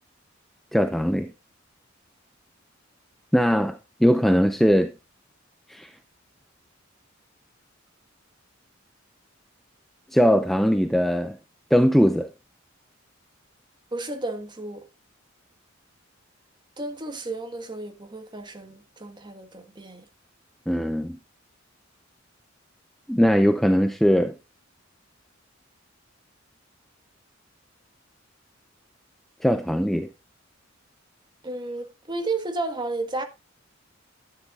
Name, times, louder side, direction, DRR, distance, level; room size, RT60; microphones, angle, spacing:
voice 1, 0.7-1.3 3.3-4.9 5.7-5.9 10.1-11.4 11.7-12.3 20.7-21.2 23.1-24.3 29.4-30.1, equal, ahead, 0.5 m, -20 dB
voice 2, 13.9-14.9 16.8-20.1 31.4-33.2, right 2 dB, 25° right, 1.5 m, -32 dB
13.0 x 10.0 x 2.4 m
head